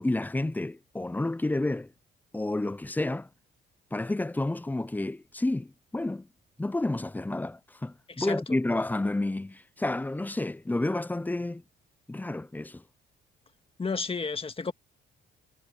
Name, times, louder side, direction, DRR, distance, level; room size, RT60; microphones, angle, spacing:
voice 1, 0.0-1.9 2.3-3.3 3.9-6.3 6.6-11.6 12.1-12.8, left 2 dB, 10° left, 0.5 m, -30 dB
voice 2, 8.2-8.6 13.8-14.7, left 4 dB, 30° left, 1.9 m, -32 dB
cardioid pair, 90°, 20 cm